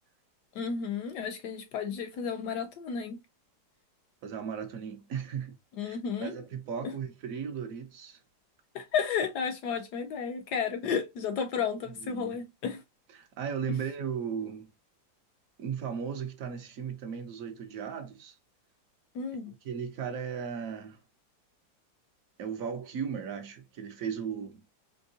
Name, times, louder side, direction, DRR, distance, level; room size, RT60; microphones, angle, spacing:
voice 1, 0.6-3.2 5.8-6.4 6.8-6.9 8.7-12.8 13.7-13.8 19.1-19.5, left 6 dB, 75° left, 1.0 m, -32 dB
voice 2, 4.2-8.2 12.0-12.4 13.1-14.7 15.6-18.3 19.5-21.0 22.4-24.6, right 7 dB, 60° right, 0.9 m, -36 dB
4.5 x 2.8 x 2.7 m
omnidirectional pair, 2.1 m